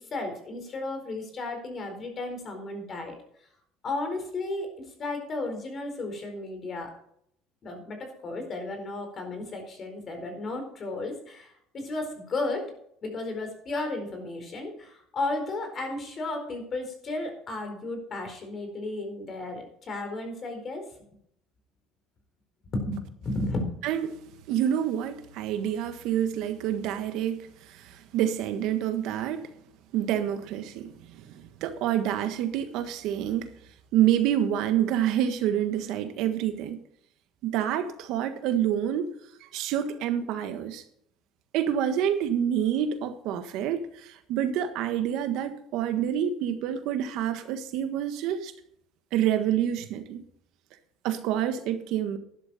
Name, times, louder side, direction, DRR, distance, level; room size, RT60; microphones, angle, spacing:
voice 1, 0.0-3.1 3.8-6.9 7.6-12.6 13.0-20.8 22.7-23.7, left 2 dB, 35° left, 4.4 m, -34 dB
voice 2, 23.8-24.2 24.5-29.5 29.9-33.5 33.9-36.8 37.4-39.1 39.4-40.8 41.5-48.5 49.1-50.2 51.0-52.2, right 10 dB, 65° right, 1.5 m, -27 dB
12.5 x 11.5 x 4.3 m
cardioid pair, 140°, 0 cm